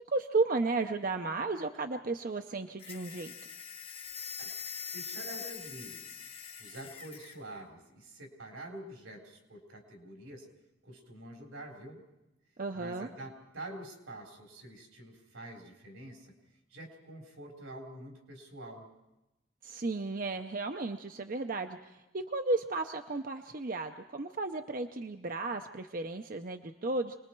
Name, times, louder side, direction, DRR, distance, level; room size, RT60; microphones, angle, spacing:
voice 1, 0.1-3.3 12.6-13.1 19.6-27.2, right 3 dB, 45° right, 6 dB, 0.6 m, -34 dB
sound 1, 2.8-7.4, left 6 dB, 30° left, 1.0 m, -43 dB
voice 2, 4.9-6.2 6.6-10.5 10.8-12.0 12.7-16.3 16.7-18.9, right 1 dB, 90° right, 1 dB, 4.2 m, -47 dB
27.5 x 20.5 x 4.6 m, 0.96 s
head